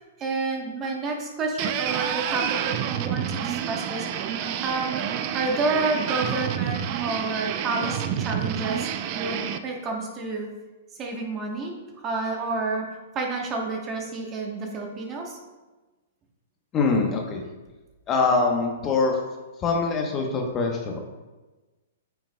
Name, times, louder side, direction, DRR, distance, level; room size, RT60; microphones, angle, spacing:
voice 1, 0.2-5.0 5.3-10.5 11.0-12.8 13.1-15.4, right 3 dB, 25° right, 1 dB, 1.2 m, -29 dB
sound 1, 1.6-9.6, right 9 dB, 40° right, 0.4 m, -29 dB
voice 2, 16.7-17.4 18.1-19.2 19.6-21.0, left 4 dB, 25° left, 1 dB, 1.0 m, -23 dB
8.8 x 5.8 x 2.3 m, 1.2 s
hypercardioid pair, 130°, 0 cm